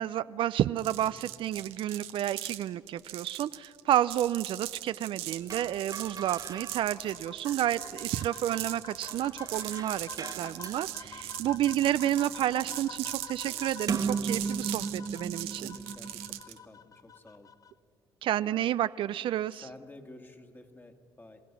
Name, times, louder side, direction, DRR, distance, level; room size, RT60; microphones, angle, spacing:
voice 1, 0.0-15.8 18.2-19.6, right 12 dB, 65° right, 16 dB, 0.4 m, -30 dB
sound 1, 0.8-16.6, right 14 dB, 85° right, 0.8 m, -40 dB
sound 2, 5.4-16.4, right 5 dB, 40° right, 0.9 m, -38 dB
sound 3, 6.7-17.7, left 6 dB, 40° left, 0.6 m, -49 dB
voice 2, 15.4-17.5 19.5-21.4, left 2 dB, 20° left, 6 dB, 1.9 m, -52 dB
27.5 x 15.5 x 6.0 m, 2.3 s
supercardioid pair, 75°, 9 cm